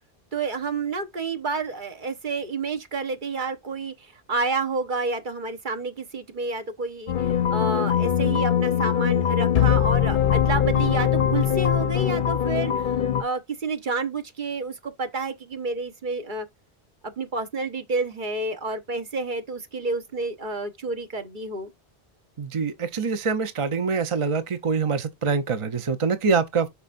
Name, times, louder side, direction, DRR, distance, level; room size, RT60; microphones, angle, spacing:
voice 1, 0.3-3.9 4.3-16.5 17.2-21.7, right 3 dB, 55° right, 1.2 m, -29 dB
sound 1, 7.1-13.2, left 9 dB, 60° left, 0.7 m, -22 dB
voice 2, 22.4-26.7, right 5 dB, 35° right, 0.6 m, -25 dB
8.0 x 5.6 x 2.5 m
omnidirectional pair, 1.0 m